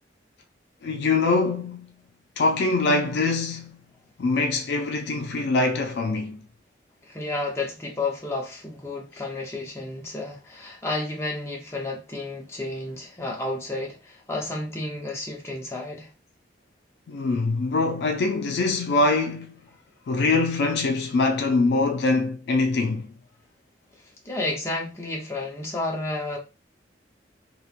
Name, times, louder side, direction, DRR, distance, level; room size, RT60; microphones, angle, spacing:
voice 1, 0.8-1.9 2.4-3.8 4.2-6.4 17.1-19.6 20.1-23.1, left 3 dB, 65° left, 0.3 m, -23 dB
voice 2, 7.1-16.1 24.2-26.4, left 2 dB, 15° left, 0.6 m, -31 dB
3.0 x 2.1 x 2.4 m
head